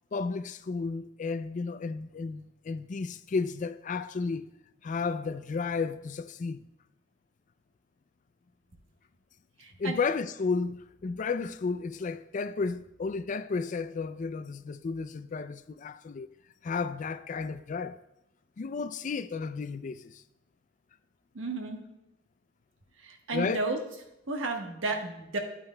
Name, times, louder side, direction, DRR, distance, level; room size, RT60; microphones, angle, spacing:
voice 1, 0.1-4.5 4.8-6.7 9.8-16.3 16.6-18.0 18.6-20.2 23.3-23.6, left 4 dB, 40° left, 0.3 m, -33 dB
voice 2, 9.6-10.0 21.3-21.8 23.0-23.8 24.3-25.4, right 3 dB, 80° right, 1.2 m, -33 dB
11.5 x 8.7 x 2.2 m
head